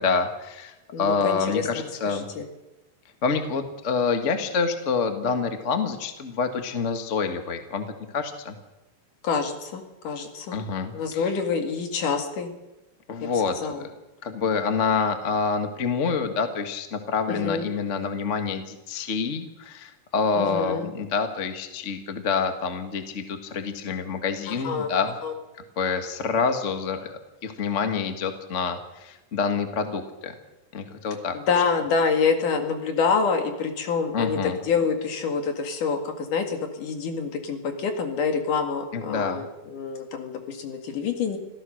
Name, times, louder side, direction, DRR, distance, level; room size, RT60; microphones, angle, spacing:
voice 1, 0.0-2.2 3.2-7.8 8.1-8.5 10.5-11.2 13.1-13.9 14.2-25.1 25.8-27.1 27.4-30.3 30.7-31.3 34.1-34.6 38.9-39.4, left 5 dB, 35° left, 7 dB, 1.1 m, -27 dB
voice 2, 0.9-2.4 9.2-10.6 10.9-12.5 13.6-13.9 17.3-17.7 20.4-20.9 24.5-24.9 25.2-25.3 31.5-41.4, left 5 dB, 65° left, 5 dB, 3.6 m, -27 dB
26.0 x 15.5 x 6.5 m, 1.0 s
omnidirectional pair, 4.0 m